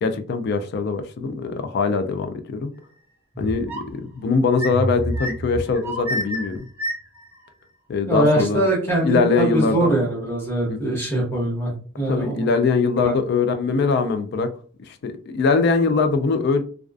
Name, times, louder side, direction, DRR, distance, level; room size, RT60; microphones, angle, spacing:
voice 1, 0.0-2.7 3.4-6.6 7.9-8.7 9.0-10.0 10.7-11.0 12.1-14.5 14.9-16.6, left 4 dB, 55° left, 9 dB, 0.3 m, -22 dB
sound 1, 3.3-4.0 4.5-7.3, equal, 10° right, 0.4 m, -28 dB
voice 2, 8.1-12.5 13.0-13.1, right 1 dB, 10° left, -5 dB, 0.9 m, -22 dB
2.3 x 2.3 x 2.3 m, 0.43 s
head